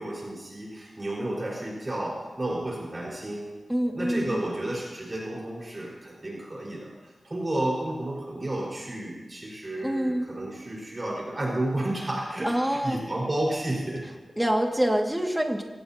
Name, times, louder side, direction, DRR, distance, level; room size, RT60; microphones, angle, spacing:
voice 1, 0.0-3.5 3.9-6.9 7.2-14.0, right 1 dB, 35° right, -3 dB, 4.9 m, -31 dB
voice 2, 3.7-4.4 9.8-10.3 12.4-13.1 14.4-15.6, equal, 10° right, 1 dB, 2.1 m, -26 dB
25.0 x 18.0 x 2.9 m, 1.2 s
wide cardioid pair, 85°, 0 cm